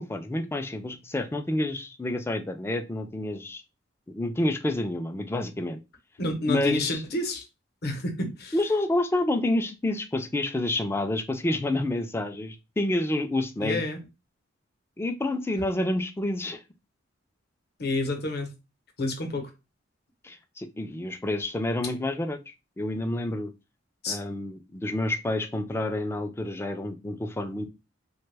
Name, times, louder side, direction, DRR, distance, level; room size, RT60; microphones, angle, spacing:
voice 1, 0.0-3.6 4.1-5.8 6.5-7.0 8.5-13.8 15.0-16.6 20.2-23.5 24.1-27.6, left 1 dB, 15° left, 6 dB, 0.3 m, -29 dB
voice 2, 6.2-7.4 7.8-8.6 13.6-14.0 17.8-18.5 19.0-19.5 24.0-24.2, left 2 dB, 55° left, 5 dB, 0.8 m, -29 dB
2.9 x 2.2 x 3.2 m, 0.26 s
head